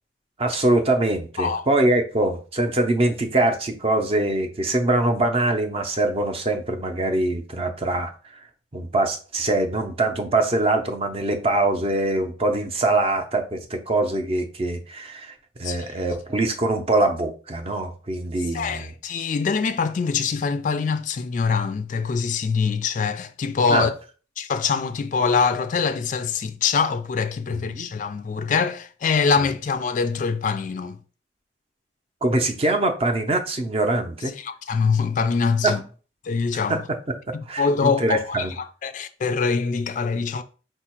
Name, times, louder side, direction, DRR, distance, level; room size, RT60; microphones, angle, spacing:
voice 1, 0.4-8.4 8.7-18.9 23.7-23.9 27.5-27.9 32.2-34.3 35.6-35.7 36.7-36.8 37.5-38.5, right 2 dB, 30° right, 0.6 m, -23 dB
voice 2, 18.5-23.9 24.4-31.0 34.4-35.8 36.2-36.9 37.3-40.4, left 5 dB, 45° left, 0.3 m, -24 dB
4.5 x 2.4 x 4.4 m
head